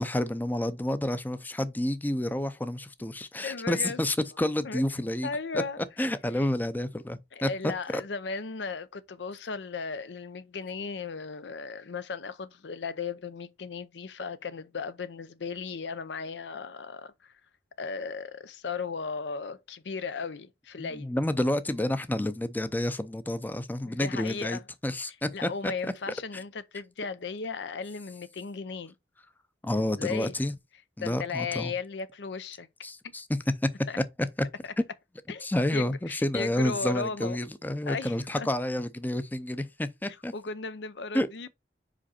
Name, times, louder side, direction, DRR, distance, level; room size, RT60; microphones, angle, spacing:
voice 1, 0.0-5.3 5.5-5.6 6.0-7.5 20.8-25.7 29.6-30.5 31.0-31.7 32.8-33.4 34.8-34.9 35.4-40.3 41.1-41.3, left 1 dB, 10° left, 0.5 m, -29 dB
voice 2, 3.4-4.0 4.6-4.8 5.2-5.8 6.3-6.5 7.3-17.3 17.8-21.1 23.8-24.6 25.3-28.9 29.7-30.3 31.0-32.7 33.0-33.1 33.9-34.0 34.6-34.7 35.3-35.5 35.7-37.4 37.9-38.5 40.1-41.5, left 4 dB, 80° left, 0.6 m, -36 dB
5.1 x 5.0 x 4.2 m
head